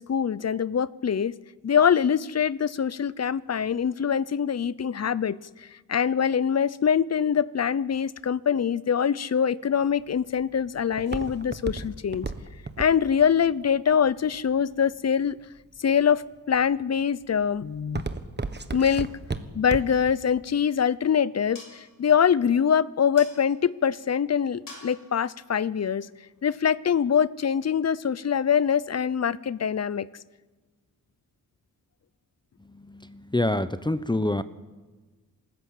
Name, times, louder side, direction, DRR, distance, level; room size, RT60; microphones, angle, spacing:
voice 1, 0.0-1.4 1.6-12.3 12.8-15.4 15.8-18.0 18.7-19.1 19.5-26.1 26.4-30.1, left 7 dB, 45° left, 20 dB, 0.6 m, -24 dB
Walk footsteps, 9.8-15.0 15.6-16.0 16.5-16.9 17.2-20.1 20.5-20.6, right 3 dB, 30° right, 1.4 m, -34 dB
sound 1, 20.4-26.8, left 3 dB, 60° left, 6.2 m, -52 dB
voice 2, 33.1-34.4, left 1 dB, 10° left, 14 dB, 0.8 m, -25 dB
26.5 x 14.0 x 8.5 m, 1.3 s
cardioid pair, 80°, 36 cm